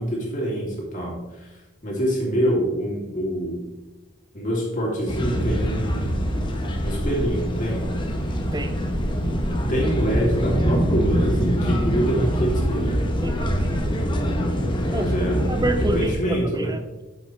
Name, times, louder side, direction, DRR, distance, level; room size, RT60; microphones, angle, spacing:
voice 1, 0.0-3.7 4.3-6.4 6.8-7.9 9.7-13.0 14.9-15.4 15.7-16.8, equal, 40° left, -4 dB, 2.9 m, -25 dB
sound 1, 5.1-16.1, equal, 25° left, 1.1 m, -24 dB
voice 2, 8.5-8.9 13.2-13.6 14.9-15.1 15.5-17.0, right 1 dB, 20° right, 8 dB, 0.6 m, -28 dB
8.5 x 7.3 x 3.3 m, 1.1 s
head